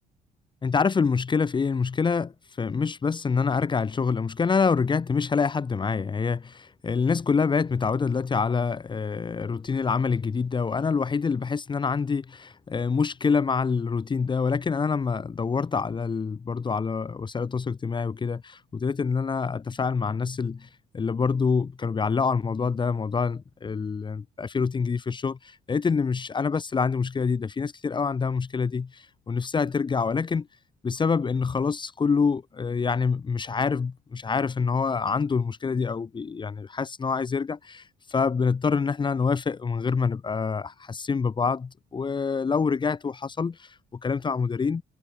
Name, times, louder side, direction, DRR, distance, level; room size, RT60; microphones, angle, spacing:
voice 1, 0.6-20.7 20.9-30.5 30.8-44.8, left 5 dB, 25° left, 1.7 m, -26 dB
cardioid pair, 110°, 17 cm